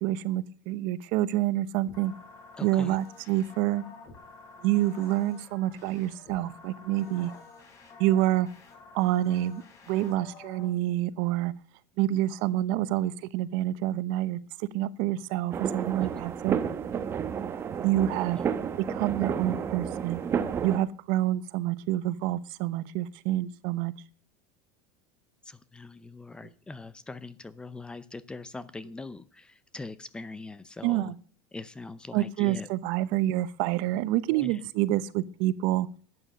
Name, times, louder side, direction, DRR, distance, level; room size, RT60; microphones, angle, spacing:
voice 1, 0.0-2.1 2.6-3.8 4.6-7.3 8.0-8.5 8.9-9.6 9.9-11.5 12.0-16.6 17.8-18.4 18.8-20.2 20.6-23.9 30.8-31.1 32.1-35.9, right 14 dB, 60° right, 16 dB, 0.8 m, -27 dB
sound 1, 1.9-10.7, left 4 dB, 35° left, 4.1 m, -49 dB
voice 2, 2.6-3.0 16.0-16.1 18.3-18.5 25.4-31.1 31.5-32.7 34.3-34.6, left 3 dB, 10° left, 16 dB, 0.6 m, -42 dB
sound 2, 15.5-20.8, right 7 dB, 25° right, 1.0 m, -31 dB
12.5 x 8.9 x 6.6 m, 0.43 s
supercardioid pair, 150°, 9 cm